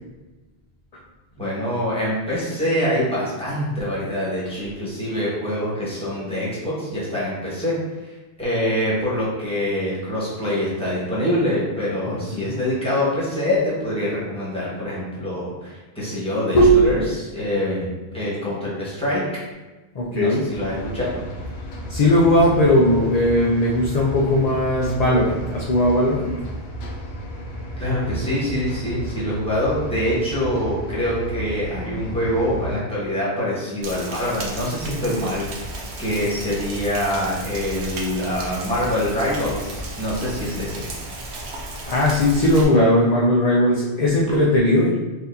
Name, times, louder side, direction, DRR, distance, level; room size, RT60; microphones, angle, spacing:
voice 1, 1.4-7.7 8.0-8.1 8.4-19.2 20.1-21.0 27.8-40.8, left 1 dB, 5° left, -8 dB, 1.2 m, -25 dB
voice 2, 12.1-12.6 16.5-16.9 20.0-20.4 21.9-26.3 41.9-44.9, left 1 dB, 50° left, -4 dB, 0.5 m, -18 dB
sound 1, 20.5-32.8, right 1 dB, 75° left, 0.9 m, -33 dB
Rain, 33.8-42.6, right 2 dB, 80° right, 1.0 m, -34 dB
4.3 x 2.8 x 2.6 m, 1.1 s
omnidirectional pair, 1.1 m